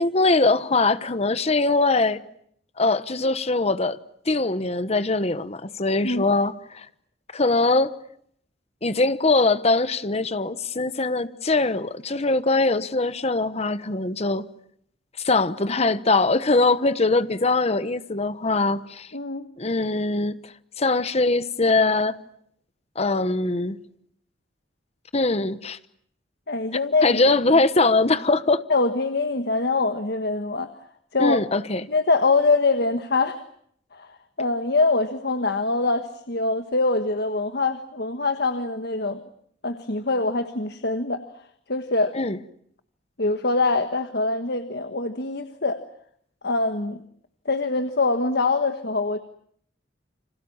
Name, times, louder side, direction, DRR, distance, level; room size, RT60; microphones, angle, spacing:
voice 1, 0.0-2.2 2.8-4.0 4.3-6.9 7.3-7.9 8.8-14.5 15.2-19.1 19.6-20.4 20.8-22.2 22.9-23.8 25.1-25.8 27.0-28.6 31.2-31.9 42.1-42.4, left 3 dB, 35° left, 1.1 m, -22 dB
voice 2, 19.1-19.5 26.5-27.2 28.7-30.7 31.1-31.4 31.9-33.4 33.9-34.1 34.4-39.2 39.6-41.2 41.7-42.1 43.2-45.8 46.4-47.0 47.4-49.2, left 3 dB, 60° left, 1.4 m, -24 dB
30.0 x 26.0 x 7.3 m
head